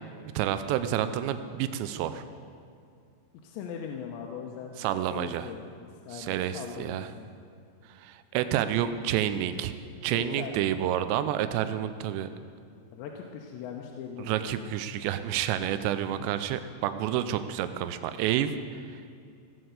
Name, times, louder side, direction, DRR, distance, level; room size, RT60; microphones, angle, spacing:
voice 1, 0.4-2.2 4.8-5.4 6.1-7.1 8.0-9.7 10.0-12.3 14.3-18.8, right 11 dB, 90° right, 11 dB, 2.9 m, -29 dB
voice 2, 3.4-4.7 5.1-7.3 10.1-10.7 12.9-14.6 16.2-16.3, left 7 dB, 90° left, 1 dB, 3.1 m, -40 dB
17.0 x 7.8 x 8.0 m, 2.4 s
omnidirectional pair, 5.0 m